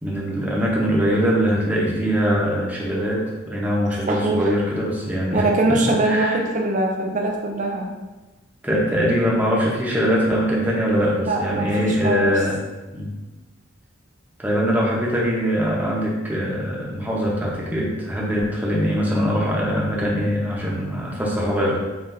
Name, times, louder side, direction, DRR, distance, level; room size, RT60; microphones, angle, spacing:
voice 1, 0.0-6.4 8.6-12.6 12.9-13.1 14.4-21.8, equal, 10° right, -4 dB, 0.7 m, -22 dB
voice 2, 4.1-4.5 5.3-7.9 11.0-12.4, right 2 dB, 40° right, 0 dB, 0.6 m, -22 dB
5.9 x 2.5 x 2.6 m, 1.2 s
head